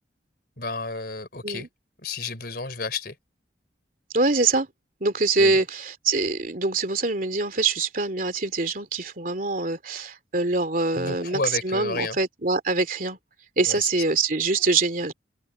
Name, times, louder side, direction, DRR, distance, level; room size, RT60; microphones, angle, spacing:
voice 1, 0.6-1.7 2.0-3.2 5.4-5.6 11.0-12.2 13.7-13.9, left 3 dB, 55° left, 4.3 m, -31 dB
voice 2, 4.1-4.7 5.0-13.2 13.6-15.1, right 3 dB, 50° right, 2.9 m, -24 dB
head